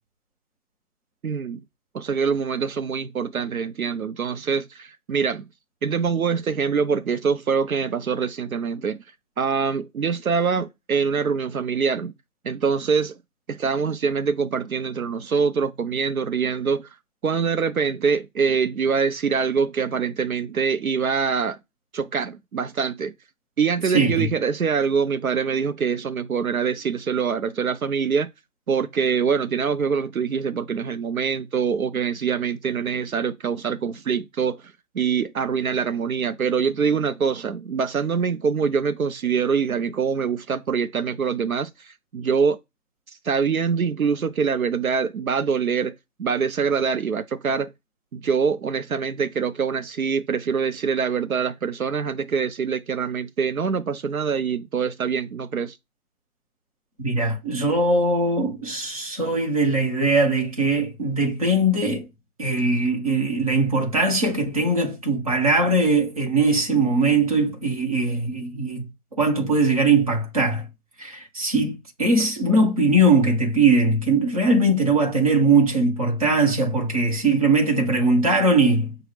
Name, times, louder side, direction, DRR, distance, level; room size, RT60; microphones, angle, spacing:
voice 1, 1.2-1.6 1.9-5.5 5.8-9.0 9.4-12.1 12.4-13.2 13.5-16.9 17.2-21.6 21.9-23.1 23.6-28.3 28.7-34.6 34.9-42.6 43.2-45.9 46.2-47.7 48.1-55.8, right 6 dB, 70° right, 0.7 m, -24 dB
voice 2, 23.9-24.3 57.0-62.1 62.4-68.8 69.2-70.7 71.0-79.0, right 2 dB, 25° right, 1.0 m, -20 dB
6.1 x 2.3 x 3.3 m
figure-of-eight pair, 160°, 43 cm